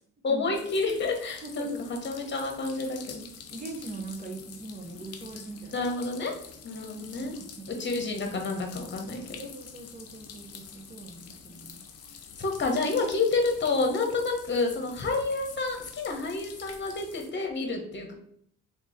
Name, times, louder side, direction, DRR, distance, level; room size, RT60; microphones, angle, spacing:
voice 1, 0.2-3.3 5.7-6.3 6.6-7.4 7.8-9.5 12.4-18.1, left 3 dB, 35° left, 3 dB, 1.1 m, -29 dB
sound 1, 0.5-17.3, left 6 dB, 55° left, 0.7 m, -47 dB
voice 2, 1.4-1.8 3.5-5.8 6.9-7.7 9.4-11.8, right 3 dB, 25° right, 3 dB, 0.9 m, -41 dB
3.6 x 3.0 x 4.1 m, 0.68 s
cardioid pair, 90°, 30 cm